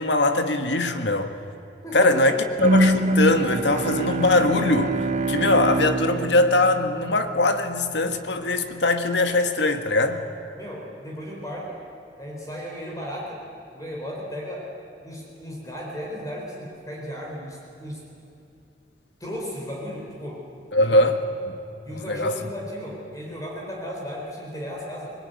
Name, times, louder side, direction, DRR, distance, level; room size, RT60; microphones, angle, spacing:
voice 1, 0.0-1.3 1.9-10.2 20.7-21.6 21.9-22.5, left 2 dB, 75° left, 7 dB, 1.6 m, -22 dB
voice 2, 1.8-2.4 3.8-4.0 10.6-11.8 12.2-13.4 13.7-14.7 15.0-18.0 19.2-20.4 20.8-21.0 21.8-25.1, equal, 20° left, -2 dB, 4.1 m, -35 dB
Bowed string instrument, 2.6-7.7, right 1 dB, 40° right, 1.1 m, -24 dB
25.0 x 20.0 x 9.4 m, 2.6 s
head